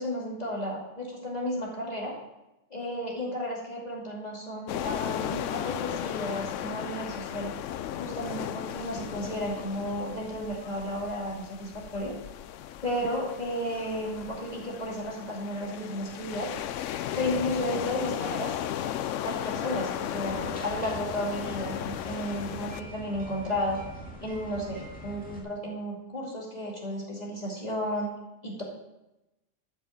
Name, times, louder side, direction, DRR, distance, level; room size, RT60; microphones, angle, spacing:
voice 1, 0.0-2.1 2.7-7.5 8.0-12.1 12.8-16.5 17.1-18.6 19.2-23.8 24.2-28.1 28.4-28.6, equal, 35° left, -4 dB, 2.7 m, -33 dB
sound 1, 4.7-22.8, left 11 dB, 90° left, 0.9 m, -35 dB
sound 2, 20.2-25.4, equal, 5° left, 2.2 m, -43 dB
12.5 x 6.3 x 7.2 m, 0.95 s
omnidirectional pair, 1.2 m